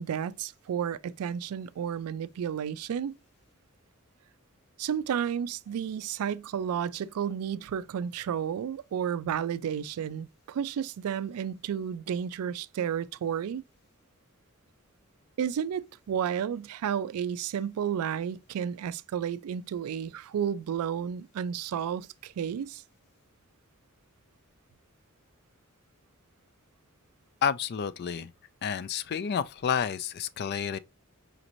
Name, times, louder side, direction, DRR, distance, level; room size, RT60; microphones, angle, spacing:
voice 1, 0.0-3.1 4.8-13.6 15.4-22.8, right 8 dB, 90° right, 0.3 m, -32 dB
voice 2, 27.4-28.3 28.6-30.8, left 7 dB, 50° left, 0.3 m, -30 dB
5.1 x 2.6 x 2.9 m
head